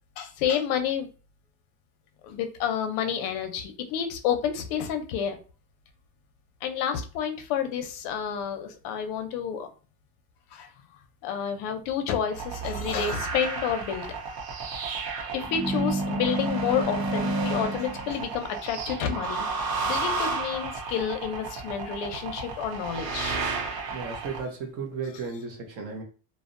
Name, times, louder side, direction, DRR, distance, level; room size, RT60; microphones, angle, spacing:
voice 1, 0.2-1.1 2.2-5.4 6.6-9.7 10.5-10.7 11.2-14.1 14.8-15.0 15.3-23.4, left 8 dB, 65° left, 7 dB, 0.6 m, -29 dB
sound 1, 12.3-24.4, right 3 dB, 60° right, 0.7 m, -31 dB
voice 2, 23.9-26.0, right 4 dB, 35° right, 2 dB, 0.4 m, -35 dB
2.6 x 2.0 x 2.4 m, 0.36 s
cardioid pair, 180°, 47 cm